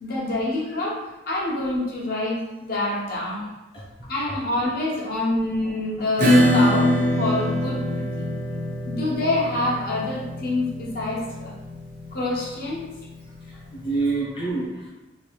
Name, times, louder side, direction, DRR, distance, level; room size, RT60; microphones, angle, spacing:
voice 1, 0.0-3.5 4.1-6.9 7.2-8.3 8.8-11.5 12.1-12.8, left 2 dB, 55° left, -5 dB, 0.8 m, -26 dB
Acoustic guitar / Strum, 6.2-13.4, left 1 dB, 45° right, 0.7 m, -23 dB
voice 2, 13.4-14.9, right 3 dB, 30° left, -8 dB, 0.5 m, -27 dB
3.0 x 2.4 x 3.0 m, 1.0 s
head